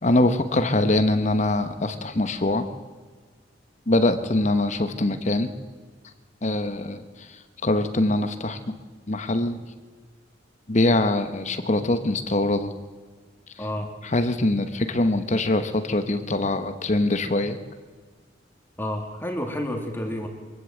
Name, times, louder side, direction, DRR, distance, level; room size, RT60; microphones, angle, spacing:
voice 1, 0.0-2.6 3.9-5.5 6.4-8.6 9.1-9.6 10.7-12.7 14.1-17.6, left 2 dB, 40° left, 9 dB, 1.1 m, -23 dB
voice 2, 13.6-13.9 18.8-20.3, left 1 dB, 10° left, 3 dB, 2.6 m, -30 dB
23.5 x 16.5 x 8.0 m, 1.5 s
head